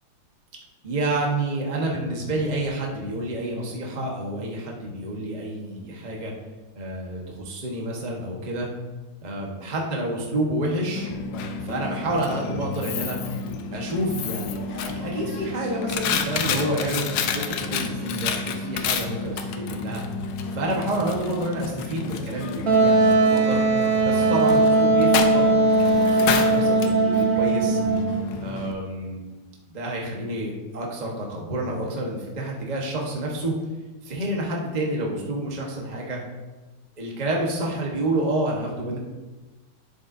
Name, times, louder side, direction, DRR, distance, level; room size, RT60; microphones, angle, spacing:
voice 1, 0.8-6.3 6.7-8.7 9.2-11.1 11.6-13.2 13.7-17.0 17.3-20.0 20.5-23.6 24.0-27.8 28.4-29.2 29.7-33.5 34.0-36.2 37.0-39.0, right 1 dB, 25° right, -2 dB, 1.1 m, -29 dB
Coin (dropping), 11.0-28.7, left 5 dB, 85° left, 1.4 m, -30 dB
Wind instrument woodwind instrument, 22.7-28.2, right 3 dB, 60° right, 1.4 m, -19 dB
11.0 x 7.0 x 2.6 m, 1.2 s
omnidirectional pair, 1.9 m